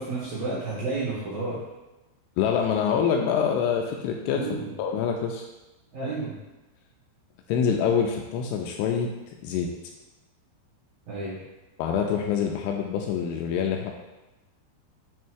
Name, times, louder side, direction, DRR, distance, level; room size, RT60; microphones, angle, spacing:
voice 1, 0.0-1.6 4.3-4.7 5.9-6.4 11.1-11.4, right 3 dB, 65° right, -9 dB, 2.5 m, -31 dB
voice 2, 2.4-4.4 4.8-5.5 7.5-9.1 9.4-9.7 11.8-13.9, left 7 dB, 85° left, 1 dB, 2.9 m, -25 dB
8.2 x 2.7 x 4.6 m, 1.0 s
omnidirectional pair, 5.9 m